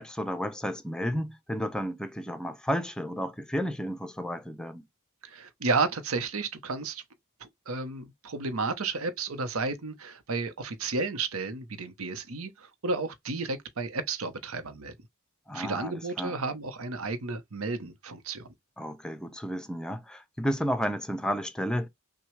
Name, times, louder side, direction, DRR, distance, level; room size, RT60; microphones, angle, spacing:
voice 1, 0.0-4.8 15.5-16.4 18.8-21.9, equal, 5° left, 0.6 m, -32 dB
voice 2, 5.2-7.0 7.4-14.9 15.5-18.5, right 3 dB, 70° right, 0.9 m, -32 dB
5.9 x 2.3 x 3.2 m
head